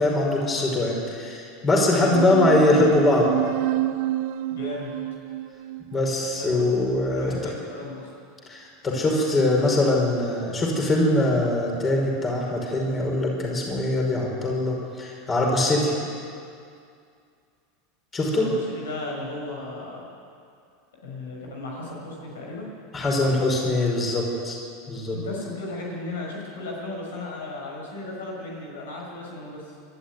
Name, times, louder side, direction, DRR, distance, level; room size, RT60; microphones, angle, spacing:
voice 1, 0.0-3.3 5.9-7.3 8.5-15.9 18.1-18.5 22.9-24.6 24.9-25.2, left 2 dB, 25° left, -1 dB, 5.3 m, -22 dB
sound 1, 2.1-7.1, right 15 dB, 65° right, 0.5 m, -29 dB
voice 2, 4.5-4.9 6.4-6.6 7.1-8.1 18.3-20.0 21.0-22.6 25.1-29.7, left 2 dB, 85° left, -2 dB, 6.7 m, -35 dB
21.5 x 12.5 x 9.6 m, 2.4 s
hypercardioid pair, 110°, 0 cm